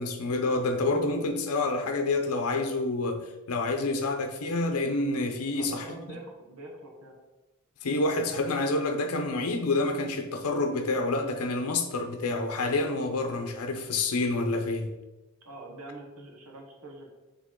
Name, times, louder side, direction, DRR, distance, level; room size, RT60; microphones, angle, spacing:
voice 1, 0.0-5.8 7.8-14.9, left 2 dB, 80° left, 0.7 m, -28 dB
voice 2, 5.5-7.2 15.4-17.1, right 2 dB, 80° right, 1.3 m, -44 dB
7.3 x 3.5 x 3.7 m
head